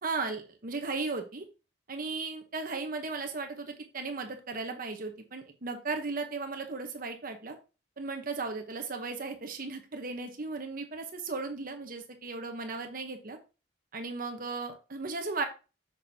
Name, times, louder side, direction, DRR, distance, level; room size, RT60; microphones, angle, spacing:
voice 1, 0.0-1.4 1.9-7.6 8.0-13.4 13.9-15.5, right 3 dB, 50° right, 5 dB, 1.1 m, -36 dB
7.3 x 6.5 x 2.8 m, 0.30 s
head